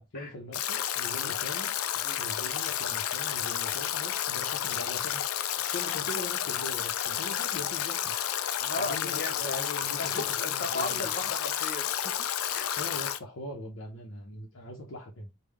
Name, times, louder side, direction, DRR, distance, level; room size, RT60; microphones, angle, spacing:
voice 1, 0.0-8.2 8.8-11.1 12.8-15.3, left 1 dB, 60° left, 0.8 m, -41 dB
Stream / Drip / Trickle dribble, 0.5-13.2, left 10 dB, 80° left, 0.4 m, -31 dB
voice 2, 8.6-9.7 10.0-12.1 12.5-12.7, left 2 dB, 45° left, 1.1 m, -36 dB
3.6 x 2.3 x 3.3 m
head